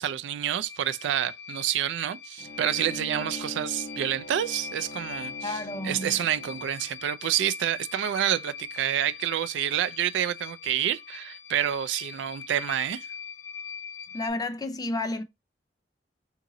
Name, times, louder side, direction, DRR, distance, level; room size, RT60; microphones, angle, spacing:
voice 1, 0.0-5.6 5.8-13.1, right 10 dB, 75° right, 0.3 m, -28 dB
sound 1, 0.6-14.3, left 6 dB, 85° left, 0.9 m, -42 dB
Bowed string instrument, 2.4-7.0, left 1 dB, 40° left, 0.9 m, -42 dB
voice 2, 5.4-6.2 14.1-15.2, left 2 dB, 20° left, 0.4 m, -31 dB
2.9 x 2.6 x 3.7 m
head